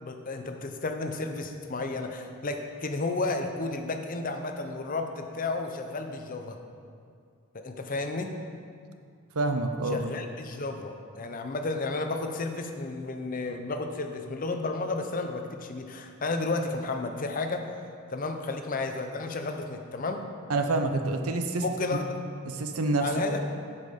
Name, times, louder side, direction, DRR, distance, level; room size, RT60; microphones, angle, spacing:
voice 1, 0.0-6.6 7.5-8.3 9.9-17.7 18.1-20.3 21.6-22.1 23.0-23.4, left 3 dB, 40° left, 5 dB, 0.7 m, -32 dB
voice 2, 9.3-10.1 20.5-21.6 21.9-22.0 22.5-23.1, right 2 dB, 75° right, 6 dB, 0.7 m, -27 dB
7.9 x 7.4 x 5.1 m, 2.2 s
head